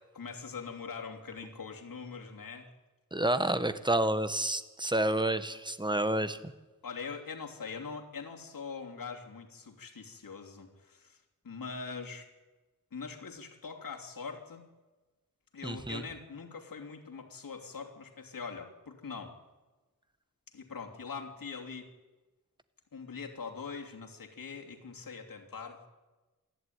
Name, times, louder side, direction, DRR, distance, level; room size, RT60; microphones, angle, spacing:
voice 1, 0.1-2.7 6.8-11.2 11.4-12.3 12.9-14.7 15.5-19.4 20.5-21.9 22.9-25.9, left 5 dB, 80° left, 2 dB, 3.1 m, -42 dB
voice 2, 3.1-6.5 15.6-16.0, right 1 dB, 15° right, 12 dB, 1.3 m, -29 dB
27.5 x 11.5 x 9.5 m, 1.2 s
wide cardioid pair, 90°, 33 cm